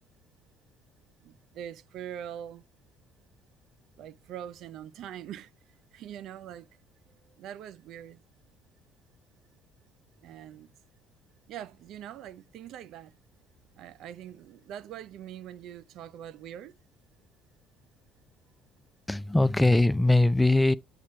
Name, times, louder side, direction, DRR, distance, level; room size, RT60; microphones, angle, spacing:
voice 1, 1.2-2.6 4.0-5.5 5.9-6.7 7.4-8.2 10.2-10.7 11.5-13.1 13.8-16.7, right 10 dB, 60° right, 0.5 m, -43 dB
voice 2, 19.1-20.7, left 2 dB, 10° left, 0.4 m, -21 dB
8.6 x 2.9 x 4.3 m
hypercardioid pair, 55°, 0 cm